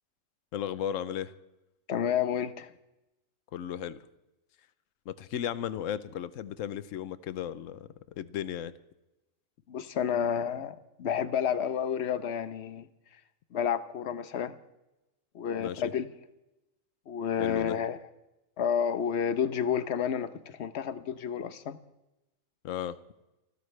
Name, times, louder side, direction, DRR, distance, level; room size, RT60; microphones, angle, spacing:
voice 1, 0.5-1.3 3.5-4.0 5.1-7.9 8.2-8.7 15.6-15.9 17.4-17.8 22.6-23.0, left 10 dB, 75° left, 15 dB, 1.1 m, -35 dB
voice 2, 1.9-2.7 9.7-12.9 13.5-14.6 15.3-16.1 17.1-18.0 18.6-21.8, left 8 dB, 60° left, 13 dB, 1.1 m, -30 dB
30.0 x 12.0 x 3.3 m, 0.95 s
omnidirectional pair, 1.4 m